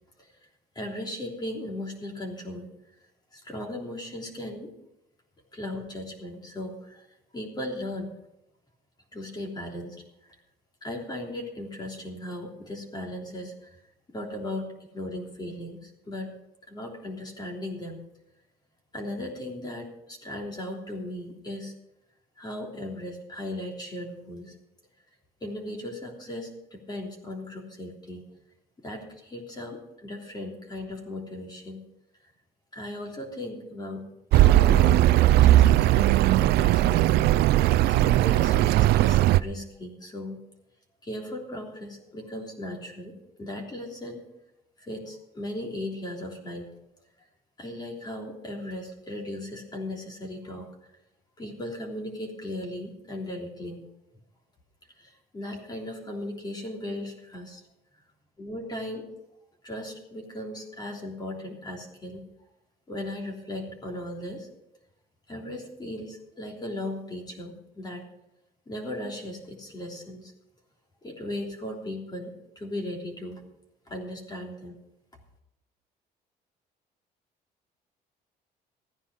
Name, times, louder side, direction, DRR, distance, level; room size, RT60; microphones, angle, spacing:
voice 1, 0.7-2.7 3.3-4.7 5.5-7.0 7.3-8.1 9.1-10.3 10.8-13.8 14.1-14.7 14.9-16.3 16.7-18.0 18.9-21.7 22.4-24.5 25.4-28.2 28.8-31.8 32.7-34.0 34.3-37.0 37.3-37.6 38.0-40.4 41.0-44.2 44.8-46.7 47.6-50.7 51.4-53.9 55.0-57.6 58.4-59.1 59.6-62.2 62.9-64.5 65.3-68.1 68.7-70.3 71.0-73.4 73.9-74.8, left 1 dB, 25° left, 0 dB, 3.3 m, -37 dB
Accelerating revving vroom, 34.3-39.4, right 14 dB, 75° right, 0.5 m, -19 dB
15.0 x 9.9 x 5.5 m, 0.87 s
cardioid pair, 110°, 17 cm